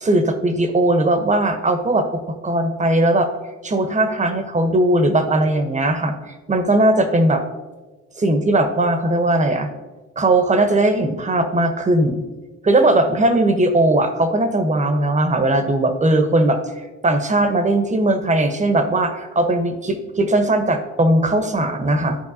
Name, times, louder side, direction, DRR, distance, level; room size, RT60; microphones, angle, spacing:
voice 1, 0.0-2.1 2.4-3.3 3.6-6.1 6.5-7.4 8.2-9.7 10.2-12.2 12.6-16.6 17.0-22.2, right 1 dB, 25° right, 7 dB, 1.0 m, -18 dB
13.0 x 4.5 x 2.8 m, 1.2 s
cardioid pair, 90°, 30 cm